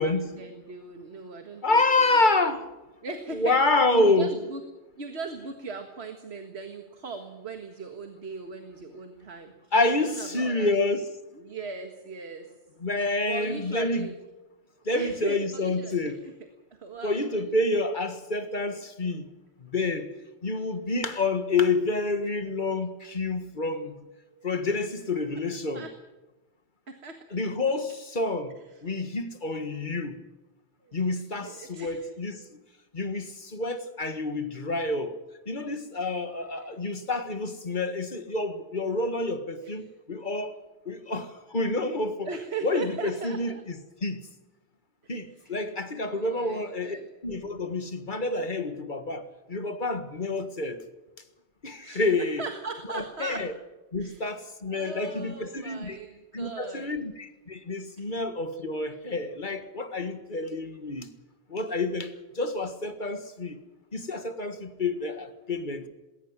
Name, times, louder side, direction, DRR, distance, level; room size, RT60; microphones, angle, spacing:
voice 1, 0.0-2.2 3.0-4.6 5.0-9.7 10.0-11.0 11.3-12.5 13.3-14.2 14.9-16.1 16.8-17.4 20.4-20.7 24.3-24.4 24.8-24.9 25.3-25.4 25.7-25.9 26.9-27.2 30.8-32.1 36.3-36.7 39.4-39.8 42.3-43.6 45.3-45.6 46.0-47.1 51.8-53.5 54.0-54.3 54.7-56.9 58.0-58.1, right 4 dB, 65° right, 1.9 m, -39 dB
voice 2, 1.6-2.6 3.3-4.3 9.7-11.1 12.8-14.1 14.8-16.2 17.0-19.3 19.6-20.1 20.4-23.9 24.4-25.9 27.3-28.5 28.8-30.2 30.9-32.4 32.9-35.1 35.5-40.5 40.8-42.3 42.6-44.2 45.1-47.0 47.2-50.8 51.6-52.4 52.9-53.5 53.9-56.0 56.3-61.1 61.5-63.6 63.9-65.8, left 2 dB, 45° left, 1.8 m, -28 dB
21.0 x 18.0 x 7.5 m
omnidirectional pair, 1.2 m